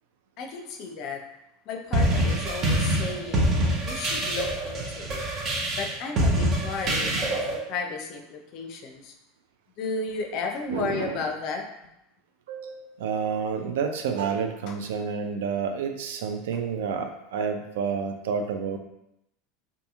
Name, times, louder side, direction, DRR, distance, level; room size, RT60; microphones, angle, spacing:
voice 1, 0.4-1.2 1.7-3.5 3.8-5.2 5.7-9.1 9.8-11.6 16.5-16.6, left 4 dB, 50° left, 3 dB, 0.4 m, -34 dB
sound 1, 1.9-7.6, right 1 dB, 40° right, 0.7 m, -25 dB
voice 2, 10.7-11.2 12.5-18.8, right 6 dB, 70° right, 6 dB, 0.3 m, -29 dB
2.7 x 2.6 x 2.4 m, 0.82 s
hypercardioid pair, 80°, 0 cm